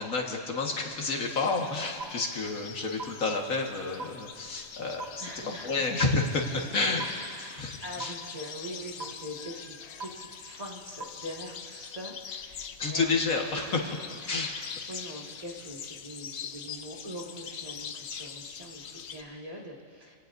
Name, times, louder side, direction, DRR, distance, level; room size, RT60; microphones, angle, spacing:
voice 1, 0.0-5.3 5.6-6.5 6.7-7.1 7.6-8.1 12.8-13.9 14.3-14.5, left 3 dB, 85° left, 0 dB, 2.1 m, -29 dB
sound 1, 0.8-19.2, left 7 dB, 60° left, 0.9 m, -44 dB
sound 2, 2.0-2.1 3.0-3.1 4.0-4.1 5.0-5.1 6.0-6.1 7.0-7.1 8.0-8.1 9.0-9.1 10.0-10.1 11.0-11.1, right 4 dB, 80° right, 1.6 m, -35 dB
voice 2, 5.2-5.9 6.6-6.7 7.0-13.2 13.8-20.2, equal, 25° right, -4 dB, 2.2 m, -43 dB
28.5 x 17.5 x 2.7 m, 2.4 s
omnidirectional pair, 1.4 m